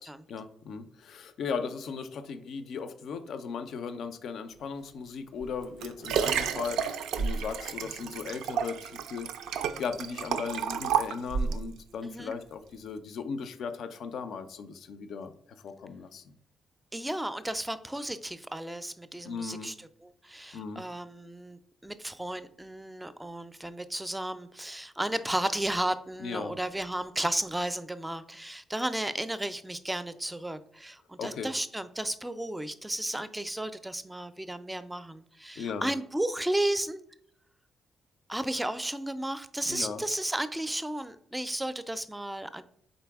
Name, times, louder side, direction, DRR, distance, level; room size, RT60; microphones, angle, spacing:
voice 1, 0.3-9.3 9.6-16.3 19.2-19.7 20.5-20.8 26.2-26.5 31.2-31.5 35.6-35.9 39.7-40.0, left 5 dB, 70° left, 10 dB, 0.4 m, -37 dB
Liquid, 5.4-11.7 12.3-12.4, right 7 dB, 90° right, 0.3 m, -31 dB
voice 2, 16.9-19.7 20.0-37.0 38.3-42.6, right 1 dB, 10° right, 12 dB, 0.4 m, -33 dB
4.1 x 3.8 x 3.4 m, 0.70 s
cardioid pair, 80°, 0 cm